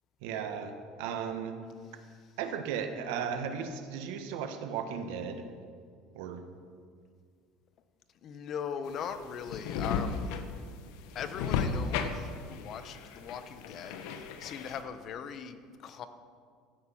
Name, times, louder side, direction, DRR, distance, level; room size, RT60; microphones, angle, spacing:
voice 1, 0.2-1.5 2.4-5.5 6.1-6.4, right 7 dB, 80° right, 7 dB, 1.2 m, -36 dB
voice 2, 8.2-10.3 11.1-16.1, left 7 dB, 45° left, 10 dB, 0.9 m, -40 dB
sound 1, 8.9-14.8, left 6 dB, 75° left, 1.0 m, -34 dB
13.5 x 8.2 x 5.7 m, 2.1 s
cardioid pair, 130°, 0 cm